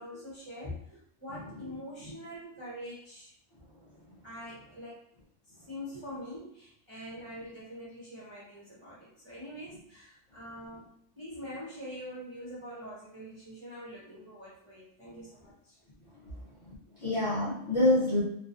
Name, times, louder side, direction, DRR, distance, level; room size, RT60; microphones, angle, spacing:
voice 1, 0.0-3.3 4.2-5.0 5.5-10.9 11.2-15.8, equal, 35° right, -8 dB, 0.4 m, -44 dB
voice 2, 16.6-18.2, left 1 dB, 40° left, -8 dB, 0.4 m, -28 dB
2.5 x 2.2 x 2.4 m, 0.72 s
omnidirectional pair, 1.3 m